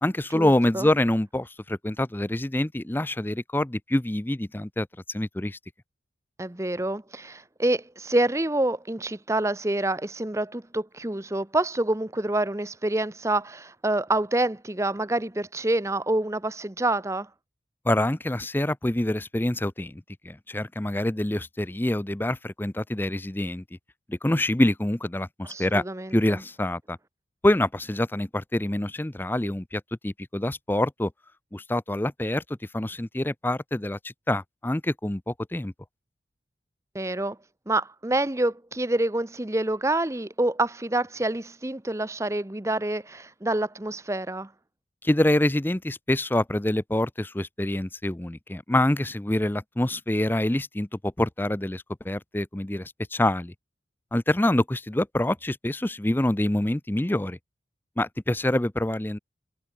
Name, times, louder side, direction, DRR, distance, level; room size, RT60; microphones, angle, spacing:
voice 1, 0.0-5.6 17.9-23.6 24.1-25.8 26.1-27.0 27.4-31.1 31.5-32.4 32.7-34.0 34.3-35.7 45.0-53.5 54.1-57.4 58.0-59.2, left 1 dB, 10° left, 0.5 m, -26 dB
voice 2, 6.4-17.3 25.4-26.1 36.9-37.4 37.7-44.5, right 2 dB, 15° right, 0.8 m, -27 dB
head